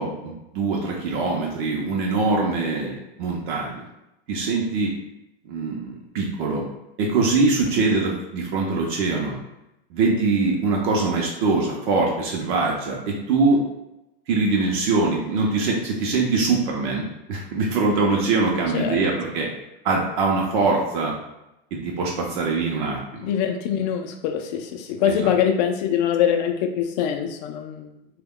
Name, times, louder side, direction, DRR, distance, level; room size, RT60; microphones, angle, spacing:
voice 1, 0.0-3.9 4.3-4.9 5.5-6.6 7.0-9.4 9.9-13.7 14.3-19.5 19.8-21.1 21.7-23.3 25.1-25.3, right 3 dB, 55° right, -1 dB, 0.7 m, -23 dB
voice 2, 18.7-19.1 23.2-27.9, left 9 dB, 50° left, 5 dB, 0.4 m, -23 dB
2.3 x 2.1 x 3.6 m, 0.91 s
supercardioid pair, 140°, 29 cm